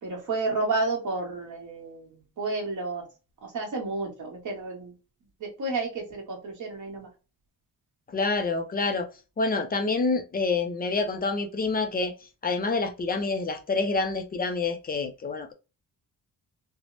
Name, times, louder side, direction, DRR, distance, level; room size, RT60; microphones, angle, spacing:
voice 1, 0.0-3.1 3.4-4.9 5.4-7.1, right 3 dB, 55° right, 1.3 m, -31 dB
voice 2, 8.1-9.1 9.4-12.1 12.4-15.5, left 3 dB, 25° left, 0.4 m, -27 dB
3.2 x 2.0 x 2.5 m
wide cardioid pair, 160°, 36 cm